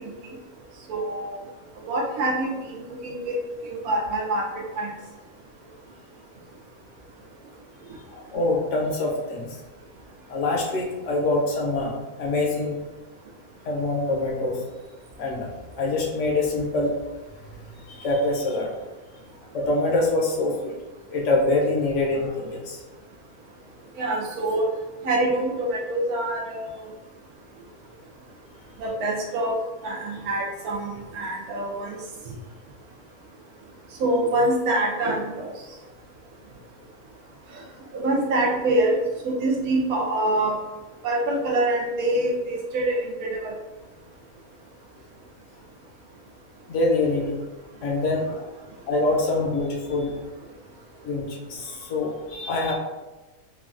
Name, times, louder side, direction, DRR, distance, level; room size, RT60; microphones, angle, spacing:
voice 1, 0.9-1.4 1.8-3.3 3.6-4.9 24.0-24.7 25.0-26.8 28.8-29.6 29.8-32.0 34.0-35.5 37.9-39.0 39.2-40.6 41.0-43.6, right 1 dB, 80° right, -1 dB, 1.1 m, -25 dB
voice 2, 8.1-9.5 10.3-12.8 13.6-14.6 15.2-15.5 15.8-16.9 17.9-18.7 19.5-20.7 21.1-22.8 46.7-47.4 47.8-48.4 48.9-50.1 51.0-52.7, left 2 dB, 65° left, -1 dB, 0.9 m, -25 dB
3.1 x 2.3 x 2.4 m, 1.1 s
omnidirectional pair, 1.6 m